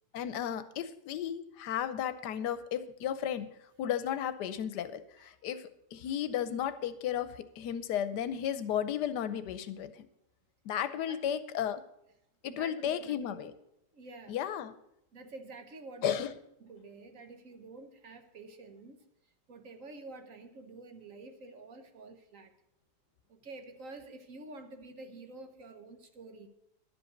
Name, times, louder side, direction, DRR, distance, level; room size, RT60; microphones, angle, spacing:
voice 1, 0.1-3.5 3.8-10.1 10.6-11.8 12.4-13.5 14.3-14.7 16.0-16.3, left 9 dB, 85° left, 13 dB, 1.3 m, -34 dB
voice 2, 5.2-5.6 11.1-11.2 12.5-13.5 13.9-14.4 15.1-16.2 16.6-19.0 19.5-22.5 23.3-26.5, right 3 dB, 55° right, 7 dB, 1.3 m, -49 dB
11.5 x 5.3 x 7.8 m, 0.79 s
omnidirectional pair, 1.8 m